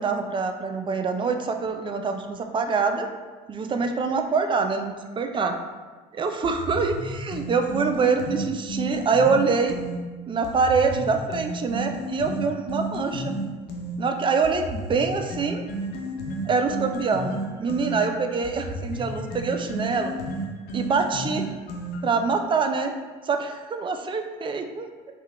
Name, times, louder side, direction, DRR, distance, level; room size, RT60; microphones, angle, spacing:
voice 1, 0.0-3.1 3.5-5.5 6.2-9.8 10.3-13.4 14.0-15.6 16.5-20.1 20.7-21.5 22.0-22.9 23.2-24.9, right 4 dB, 30° right, 5 dB, 0.4 m, -25 dB
sound 1, 6.4-10.0 10.4-14.0 14.4-22.2, right 1 dB, 60° left, 0.7 m, -32 dB
3.7 x 2.2 x 3.2 m, 1.4 s
supercardioid pair, 80°, 18 cm